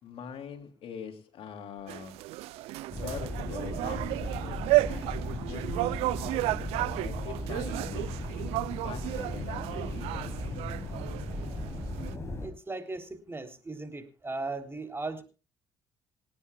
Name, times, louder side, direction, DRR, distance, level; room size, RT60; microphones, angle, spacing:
voice 1, 0.0-2.3 2.9-5.0 5.3-6.0 7.0-8.3 8.8-10.4, left 7 dB, 70° left, 6 dB, 2.8 m, -43 dB
sound 1, 1.9-12.1, right 19 dB, 85° right, 0.6 m, -33 dB
sound 2, 2.9-12.5, left 1 dB, 25° left, 5.9 m, -37 dB
voice 2, 12.4-15.2, right 3 dB, 25° right, 5 dB, 3.4 m, -37 dB
27.0 x 10.0 x 2.4 m, 0.33 s
supercardioid pair, 60°, 10 cm